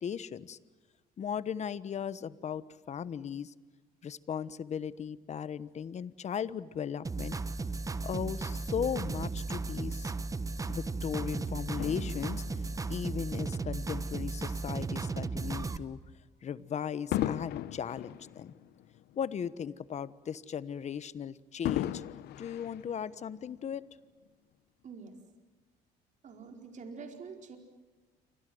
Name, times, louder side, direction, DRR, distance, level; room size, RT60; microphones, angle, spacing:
voice 1, 0.0-0.6 1.2-3.5 4.0-7.4 8.0-10.1 10.7-16.0 16.4-18.5 19.2-22.0 22.4-23.9, left 8 dB, 40° left, 16 dB, 1.2 m, -37 dB
sound 1, 7.0-15.8, right 3 dB, 20° right, 1.2 m, -35 dB
Fireworks, 11.8-14.4 15.0-15.2 17.1-19.6 20.0-20.1 21.6-23.5 24.3-24.4, left 13 dB, 75° left, 0.8 m, -37 dB
voice 2, 24.8-25.1 26.2-27.6, right 5 dB, 45° right, 4 dB, 4.5 m, -46 dB
28.5 x 25.5 x 7.9 m, 1.2 s
cardioid pair, 110°, 17 cm